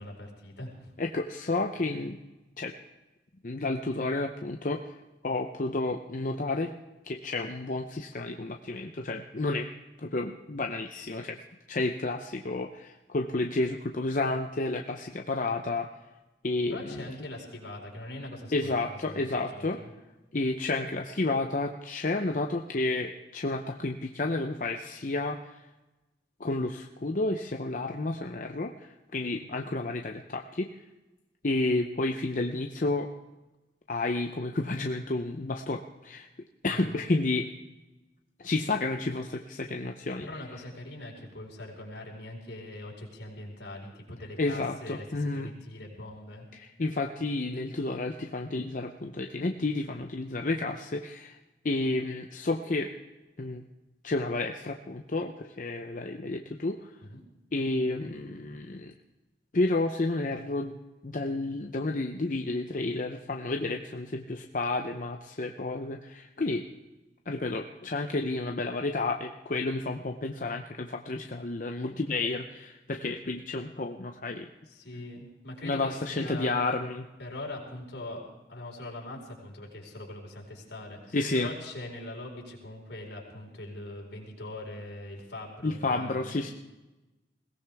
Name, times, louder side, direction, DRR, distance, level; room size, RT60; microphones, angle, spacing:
voice 1, 0.0-0.9 16.7-19.9 36.7-37.0 40.2-46.5 57.1-57.2 74.7-76.8 77.2-78.2 78.5-86.4, left 1 dB, 75° left, -1 dB, 4.8 m, -42 dB
voice 2, 1.0-2.2 2.6-2.7 3.4-5.0 5.2-6.7 7.0-9.7 10.0-11.4 11.7-15.9 16.4-17.1 18.5-19.8 20.3-25.4 26.4-30.7 31.4-33.1 33.9-36.3 36.6-37.5 38.4-40.3 44.4-45.5 46.5-51.4 51.6-52.9 53.4-53.6 54.0-56.8 57.5-58.9 59.5-60.8 61.0-66.6 67.3-74.5 75.6-77.0 81.1-81.5 85.6-86.5, left 2 dB, 45° left, 4 dB, 0.7 m, -31 dB
21.5 x 17.0 x 3.5 m, 1.1 s
head